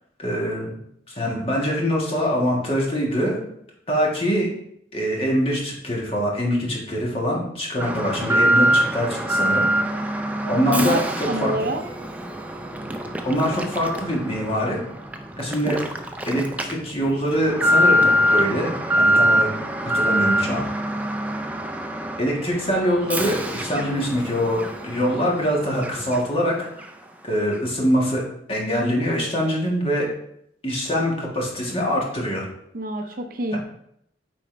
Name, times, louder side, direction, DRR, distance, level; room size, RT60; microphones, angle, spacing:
voice 1, 0.2-0.7 1.1-3.4 3.9-4.5 4.9-9.7 10.4-11.5 13.2-14.8 15.4-15.8 16.2-19.5 19.8-20.6 22.2-26.7 27.2-28.2 28.5-30.1 30.6-32.4 33.5-33.6, equal, 30° left, -3 dB, 1.6 m, -24 dB
Alarm, 7.8-26.5 26.8-26.9 27.5-27.6, equal, 10° right, 0.4 m, -24 dB
voice 2, 10.7-11.8 32.7-33.6, right 1 dB, 50° right, 5 dB, 0.6 m, -26 dB
8.8 x 4.3 x 3.3 m, 0.73 s
head